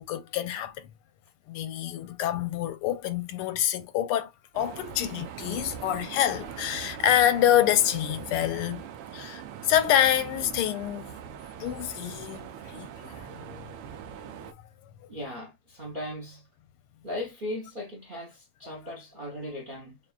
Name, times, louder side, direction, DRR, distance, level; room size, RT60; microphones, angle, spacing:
voice 1, 0.1-0.9 1.5-8.8 9.1-11.1 11.6-13.3, left 11 dB, 85° left, 1.5 m, -26 dB
sound 1, 4.5-14.5, right 9 dB, 85° right, 1.6 m, -42 dB
voice 2, 15.1-16.5 17.0-20.0, left 1 dB, 50° right, 0.6 m, -37 dB
6.1 x 2.5 x 2.3 m
omnidirectional pair, 2.4 m